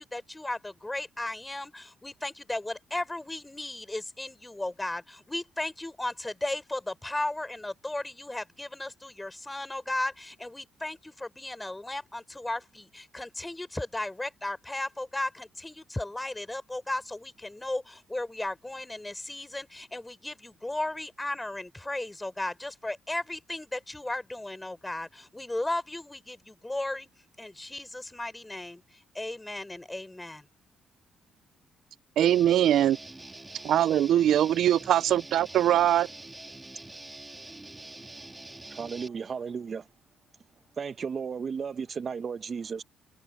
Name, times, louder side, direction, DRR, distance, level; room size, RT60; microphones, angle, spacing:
voice 1, 0.0-27.1 27.4-28.8 29.1-30.5, left 2 dB, 15° left, 4.3 m, -35 dB
Guitar, 32.2-39.1, right 2 dB, 15° right, 2.5 m, -45 dB
voice 2, 32.2-33.0 33.6-36.1, right 11 dB, 75° right, 0.5 m, -22 dB
voice 3, 38.7-39.9 40.8-42.8, right 6 dB, 45° right, 1.0 m, -34 dB
cardioid pair, 90°, 0 cm